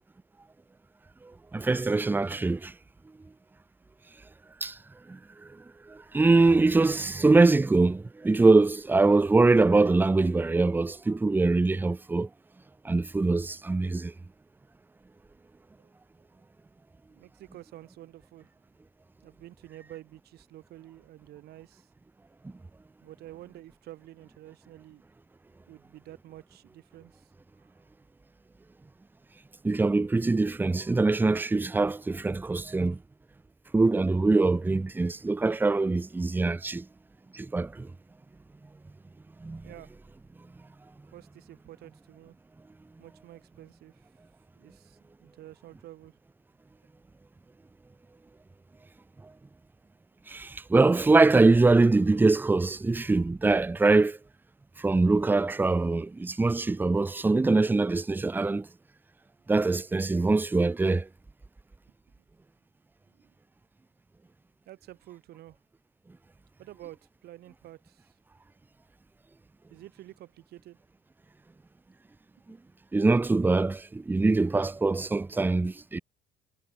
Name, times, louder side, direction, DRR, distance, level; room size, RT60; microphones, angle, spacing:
voice 1, 1.5-2.7 4.6-4.8 5.1-5.2 5.9-12.3 12.8-14.1 29.6-33.0 33.7-36.8 37.3-37.9 39.4-39.6 50.3-54.2 54.8-58.7 59.5-61.1 72.5-72.6 72.9-76.0, right 3 dB, 10° right, 0.6 m, -23 dB
voice 2, 17.1-18.5 19.2-21.9 23.0-25.0 25.7-27.3 39.6-39.9 41.1-42.4 43.0-44.1 44.6-46.1 63.2-63.3 64.7-65.6 66.6-68.0 69.7-70.8, right 14 dB, 70° right, 2.2 m, -49 dB
cardioid pair, 110°, 17 cm